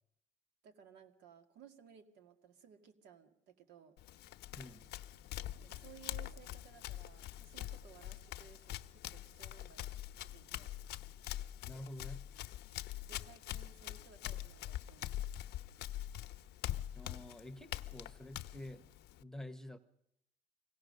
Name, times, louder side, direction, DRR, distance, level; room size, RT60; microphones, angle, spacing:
voice 1, 0.6-4.0 5.6-9.9 10.2-10.8 13.1-15.3, right 8 dB, 85° right, 7 dB, 2.1 m, -59 dB
Run, 4.0-19.2, left 13 dB, 80° left, 0.8 m, -44 dB
voice 2, 4.6-4.9 11.7-12.3 16.8-18.9 19.2-19.8, left 1 dB, 5° left, 10 dB, 1.0 m, -49 dB
24.5 x 17.0 x 6.6 m, 0.79 s
cardioid pair, 110°, 17 cm